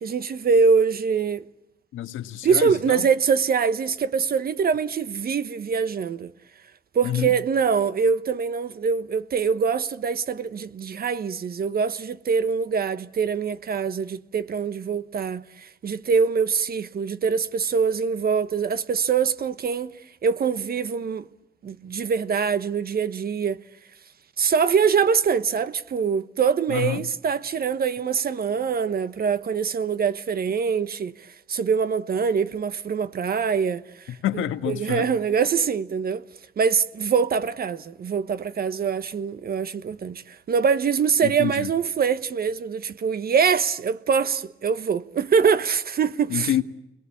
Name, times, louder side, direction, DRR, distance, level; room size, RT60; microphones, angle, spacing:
voice 1, 0.0-1.4 2.4-6.3 6.9-19.9 20.2-21.3 21.6-23.6 24.4-34.2 34.7-36.2 36.6-46.5, right 6 dB, 50° right, 1.2 m, -24 dB
voice 2, 1.9-3.1 7.0-7.3 26.7-27.0 34.2-35.1 41.2-41.7 46.3-46.6, left 12 dB, 80° left, 1.6 m, -27 dB
28.5 x 22.0 x 8.6 m
cardioid pair, 90°, 20 cm